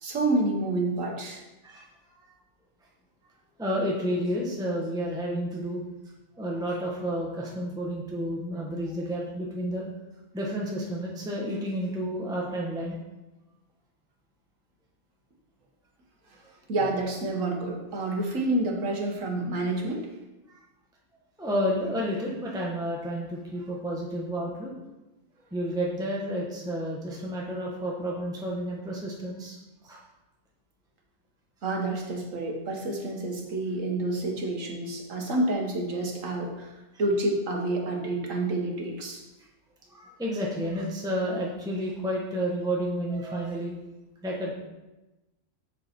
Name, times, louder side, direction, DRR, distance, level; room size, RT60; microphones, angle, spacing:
voice 1, 0.0-1.4 16.7-20.1 31.6-36.7 37.0-39.2, right 2 dB, 85° right, 1 dB, 1.8 m, -28 dB
voice 2, 1.6-2.2 3.6-5.8 6.4-9.8 10.3-13.0 20.5-20.6 21.4-24.7 25.5-29.6 29.8-30.0 39.9-43.7 44.2-44.5, equal, 5° right, -3 dB, 1.1 m, -31 dB
7.8 x 6.5 x 4.4 m, 1.0 s
omnidirectional pair, 1.3 m